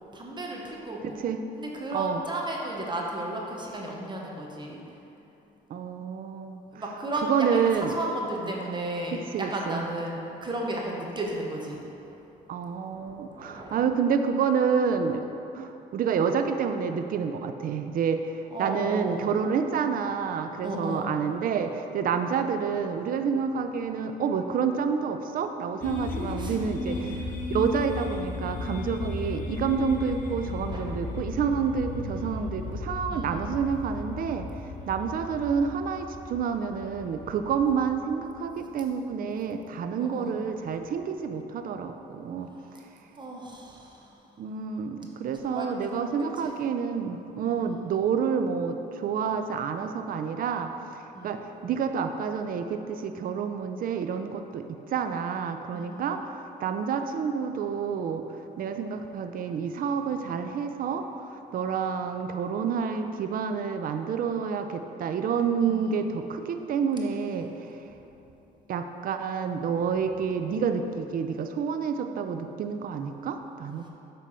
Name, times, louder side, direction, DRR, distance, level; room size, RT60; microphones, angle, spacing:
voice 1, 0.1-1.2 1.6-4.8 6.7-9.2 9.5-12.1 12.9-13.8 18.5-19.3 20.6-21.1 26.4-26.6 26.8-27.1 30.4-31.0 33.1-33.6 40.0-40.4 43.2-44.0 45.4-46.6 47.4-47.9 51.1-51.3 55.7-56.2 65.6-65.9, right 1 dB, 25° right, -1 dB, 1.1 m, -34 dB
voice 2, 1.0-1.4 1.9-2.2 5.7-6.6 7.3-8.0 8.4-8.5 9.1-9.8 12.5-15.2 15.5-27.2 27.5-34.5 34.9-42.5 44.4-50.7 51.2-56.2 56.6-58.2 58.6-67.5 68.7-73.9, right 6 dB, 50° right, 7 dB, 0.5 m, -28 dB
sound 1, 25.8-38.7, left 3 dB, 45° left, 0.9 m, -35 dB
7.5 x 3.4 x 5.6 m, 3.0 s
supercardioid pair, 85°, 19 cm